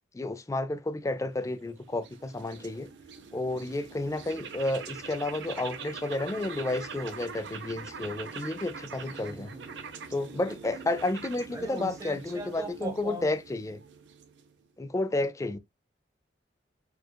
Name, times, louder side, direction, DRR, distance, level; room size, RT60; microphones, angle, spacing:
voice 1, 0.1-2.9 3.3-9.5 10.1-13.8 14.8-15.6, left 2 dB, 20° left, 0.4 m, -31 dB
sound 1, 1.2-14.7, right 5 dB, 80° right, 0.6 m, -43 dB
voice 2, 9.1-10.0 11.5-13.3, right 2 dB, 20° right, 1.0 m, -40 dB
4.5 x 2.4 x 2.3 m
head